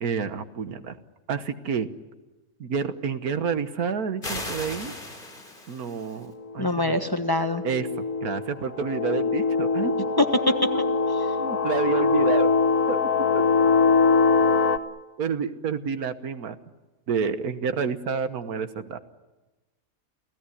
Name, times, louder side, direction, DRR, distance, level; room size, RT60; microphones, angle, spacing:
voice 1, 0.0-1.0 1.3-1.9 2.6-4.9 5.7-7.0 7.6-10.1 10.7-10.8 11.4-12.5 12.9-13.0 13.3-13.4 15.2-16.6 17.1-19.0, right 6 dB, 90° right, 10 dB, 1.8 m, -29 dB
sound 1, 4.2-6.3, left 1 dB, 35° left, 3.9 m, -36 dB
sound 2, 6.5-6.6 7.4-14.8, left 4 dB, 90° left, 1.6 m, -22 dB
voice 2, 6.6-7.6 10.3-10.5, left 1 dB, 15° left, 7 dB, 1.2 m, -24 dB
29.5 x 17.5 x 10.0 m, 1.1 s
omnidirectional pair, 1.5 m